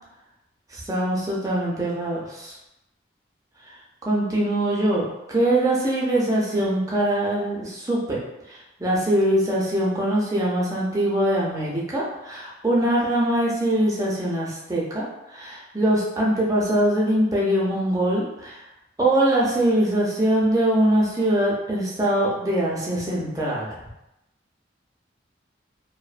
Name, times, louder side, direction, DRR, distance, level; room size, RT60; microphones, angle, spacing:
voice 1, 0.7-2.5 4.0-8.2 8.5-15.0 15.3-18.6 19.0-23.8, right 1 dB, 20° right, -5 dB, 0.5 m, -22 dB
2.5 x 2.1 x 2.4 m, 0.90 s
head